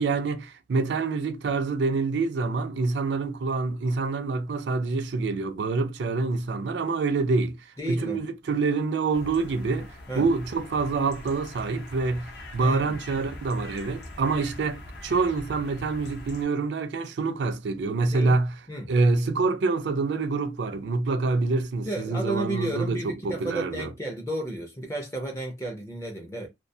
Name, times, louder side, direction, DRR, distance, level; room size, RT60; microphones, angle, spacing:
voice 1, 0.0-7.6 7.9-9.9 10.1-18.5 18.9-23.9, right 3 dB, 75° right, 0.4 m, -26 dB
voice 2, 7.8-8.2 10.1-10.3 12.6-13.0 18.1-18.4 18.7-18.9 21.8-26.5, right 1 dB, 15° left, 0.4 m, -32 dB
sound 1, 9.1-16.4, left 1 dB, 65° left, 0.6 m, -43 dB
2.2 x 2.2 x 2.6 m
head